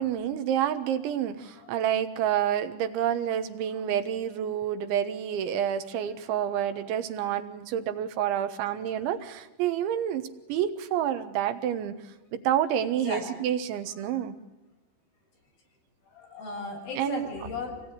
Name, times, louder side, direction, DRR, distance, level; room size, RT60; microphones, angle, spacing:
voice 1, 0.0-10.2 10.5-12.0 12.3-14.4 17.0-17.3, right 10 dB, 90° right, 9 dB, 3.7 m, -28 dB
voice 2, 1.4-1.7 3.7-3.8 6.5-7.0 13.0-13.2 14.1-14.2 16.1-17.9, left 3 dB, 50° left, -1 dB, 9.8 m, -38 dB
26.5 x 19.5 x 9.8 m, 1.0 s
omnidirectional pair, 5.2 m